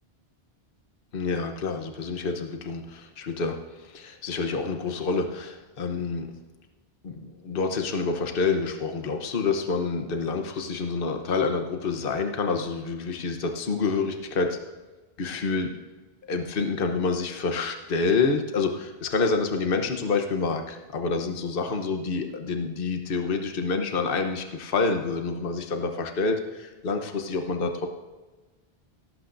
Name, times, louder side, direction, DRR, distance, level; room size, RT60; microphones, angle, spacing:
voice 1, 1.1-6.3 7.0-14.6 15.2-15.7 16.3-27.9, left 4 dB, 60° left, 5 dB, 1.2 m, -28 dB
17.5 x 14.5 x 2.6 m, 1.2 s
omnidirectional pair, 1.1 m